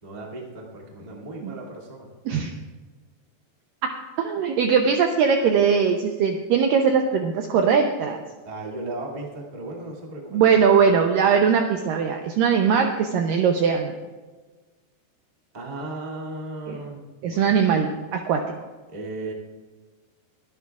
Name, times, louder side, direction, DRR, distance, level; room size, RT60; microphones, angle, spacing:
voice 1, 0.0-2.1 8.4-10.5 15.5-17.6 18.9-19.3, right 2 dB, 20° right, -2 dB, 1.1 m, -36 dB
voice 2, 4.2-8.2 10.3-13.9 17.2-18.4, right 6 dB, 85° right, 3 dB, 2.0 m, -20 dB
23.5 x 11.0 x 2.4 m, 1.3 s
omnidirectional pair, 4.9 m